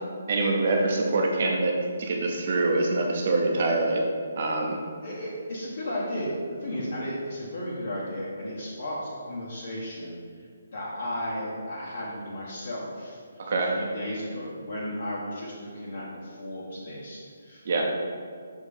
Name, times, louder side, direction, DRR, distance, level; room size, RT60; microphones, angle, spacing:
voice 1, 0.3-4.0 4.4-4.8 13.4-13.8 17.6-17.8, right 2 dB, 45° right, 0 dB, 0.7 m, -25 dB
voice 2, 5.0-10.5 10.7-13.2 13.7-17.8, equal, 55° left, -7 dB, 1.3 m, -34 dB
6.3 x 3.6 x 5.3 m, 2.1 s
figure-of-eight pair, 140°, 0 cm